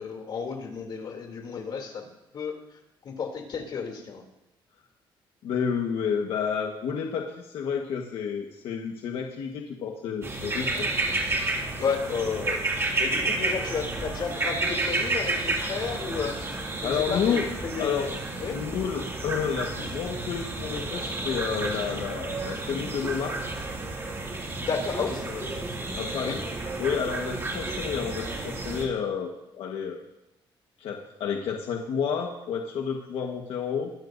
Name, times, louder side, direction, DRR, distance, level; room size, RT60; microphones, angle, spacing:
voice 1, 0.0-2.1 2.3-2.6 3.0-4.2 11.8-18.1 18.4-18.6 24.6-25.9 26.2-26.3, left 5 dB, 55° left, 2 dB, 2.9 m, -32 dB
voice 2, 5.4-10.9 16.8-17.5 17.8-18.0 18.5-23.4 26.0-26.4 26.8-30.0 30.8-33.9, left 7 dB, 85° left, 1 dB, 1.4 m, -30 dB
sound 1, 10.2-28.9, right 2 dB, 30° right, 2.4 m, -31 dB
23.0 x 13.0 x 2.7 m, 0.89 s
cardioid pair, 135°, 9 cm